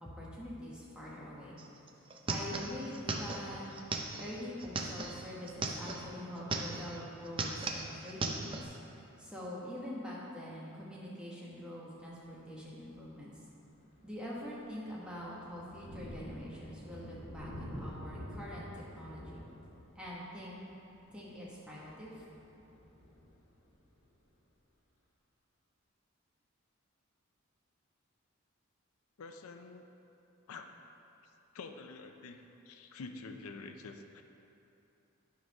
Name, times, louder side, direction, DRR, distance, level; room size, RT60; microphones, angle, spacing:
voice 1, 0.0-1.6 2.3-3.6 4.2-13.3 14.0-19.4 19.9-20.6 21.1-22.2, equal, 5° right, -6 dB, 1.2 m, -45 dB
sound 1, 1.6-1.7 1.9-6.0 6.4-7.0 7.2-8.6, right 3 dB, 25° right, 0.4 m, -37 dB
Thunder, 12.0-12.3 12.9-13.0 13.5-24.0, equal, 65° left, 1.8 m, -49 dB
voice 2, 29.2-29.9 30.5-30.7 31.5-34.2, left 3 dB, 85° left, 6 dB, 0.5 m, -47 dB
10.5 x 3.8 x 5.3 m, 2.9 s
head